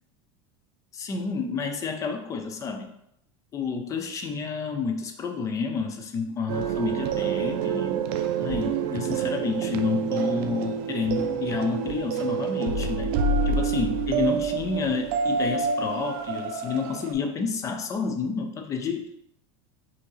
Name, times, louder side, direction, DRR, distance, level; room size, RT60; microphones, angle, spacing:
voice 1, 0.9-2.9 3.5-8.0 8.4-13.1 13.5-19.0, left 5 dB, 25° left, 5 dB, 0.5 m, -30 dB
sound 1, 6.5-17.1, right 5 dB, 60° right, 0.4 m, -27 dB
4.5 x 2.9 x 3.1 m, 0.76 s
supercardioid pair, 155°, 14 cm